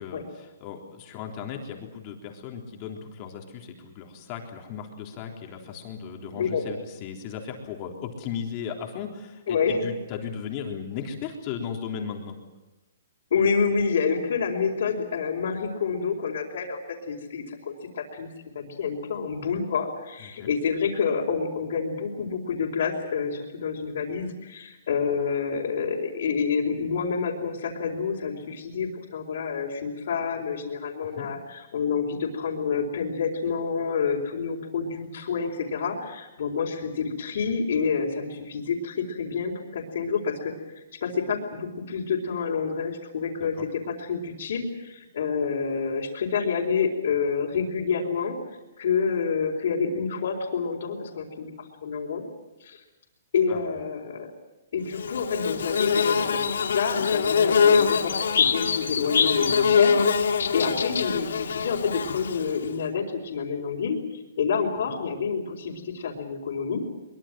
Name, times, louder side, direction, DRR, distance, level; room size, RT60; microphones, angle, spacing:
voice 1, 0.0-12.4 20.2-20.5 31.0-31.3 43.4-43.6 53.5-53.7, left 7 dB, 25° left, 2 dB, 3.7 m, -36 dB
voice 2, 6.3-6.6 9.5-9.9 13.3-48.3 48.8-52.2 52.6-52.8 53.3-54.3 54.7-66.8, left 5 dB, 60° left, -4 dB, 4.5 m, -28 dB
Bird / Buzz, 55.0-62.7, left 6 dB, 80° left, 2.5 m, -23 dB
23.5 x 23.0 x 7.6 m, 1.1 s
hypercardioid pair, 170°, 0 cm